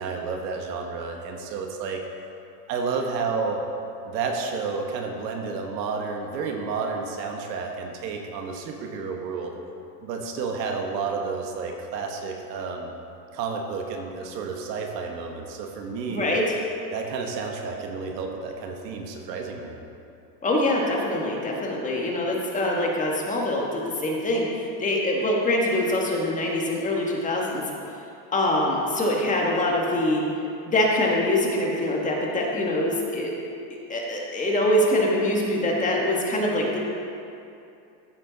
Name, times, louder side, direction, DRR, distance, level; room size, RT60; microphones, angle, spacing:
voice 1, 0.0-2.0 2.7-3.6 4.0-9.6 10.0-12.9 13.3-16.3 16.9-19.8, right 4 dB, 80° right, 2 dB, 1.5 m, -31 dB
voice 2, 16.1-16.4 20.4-24.5 24.8-27.6 28.3-30.2 30.6-33.3 33.9-36.8, left 1 dB, 15° left, -2 dB, 1.5 m, -24 dB
14.5 x 7.5 x 4.0 m, 2.7 s
supercardioid pair, 145°, 50 cm